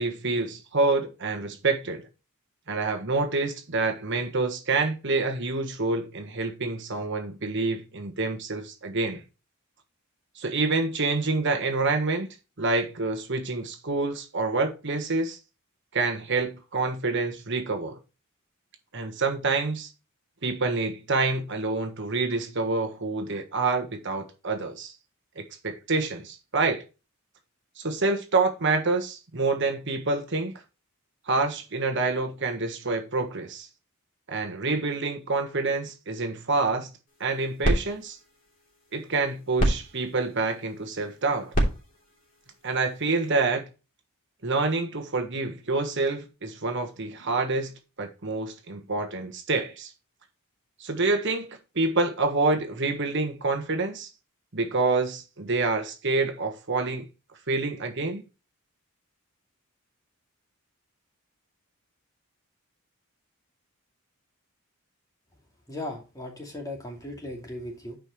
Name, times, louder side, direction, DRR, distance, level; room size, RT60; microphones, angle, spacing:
voice 1, 0.0-2.1 2.7-9.2 10.4-12.3 12.6-15.4 15.9-18.0 18.9-19.9 20.4-24.9 25.4-26.8 27.8-30.5 31.3-33.7 34.3-36.9 37.2-38.2 38.9-41.5 42.6-43.7 44.4-47.7 48.0-49.9 50.8-51.5 51.7-54.1 54.5-57.1 57.5-58.2, right 3 dB, 55° right, 1.4 m, -27 dB
sound 1, 37.1-43.5, right 1 dB, 40° left, 3.1 m, -31 dB
voice 2, 65.7-68.0, left 1 dB, 15° left, 2.6 m, -37 dB
9.9 x 5.1 x 3.1 m
head